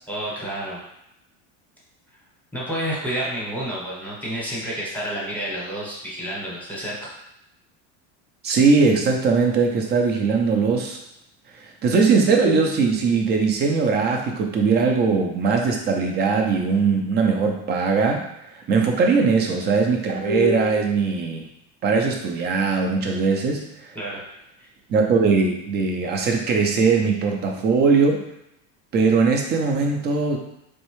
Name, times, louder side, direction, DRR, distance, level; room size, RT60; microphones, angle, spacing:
voice 1, 0.1-0.8 2.5-7.1 23.9-24.2 24.6-24.7, right 1 dB, 5° left, -6 dB, 1.0 m, -29 dB
voice 2, 8.4-11.0 11.8-18.2 18.7-21.4 21.8-23.6 24.9-28.2 28.9-30.4, right 4 dB, 30° right, 2 dB, 0.6 m, -20 dB
4.2 x 3.2 x 3.1 m, 0.83 s
cardioid pair, 155°, 36 cm